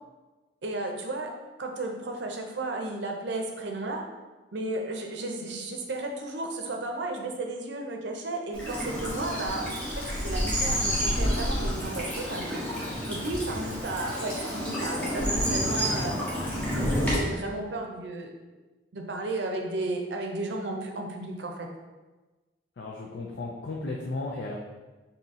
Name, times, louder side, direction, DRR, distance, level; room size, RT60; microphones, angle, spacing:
voice 1, 0.6-1.3 1.6-4.0 4.5-12.6 13.1-16.2 16.9-18.3 18.9-21.7, right 2 dB, 70° right, 2 dB, 0.6 m, -33 dB
Bird vocalization bird call bird song / Stream, 8.5-17.2, equal, 10° left, 0.9 m, -29 dB
voice 2, 22.8-24.6, left 2 dB, 65° left, -2 dB, 0.4 m, -35 dB
4.1 x 2.8 x 3.6 m, 1.2 s
head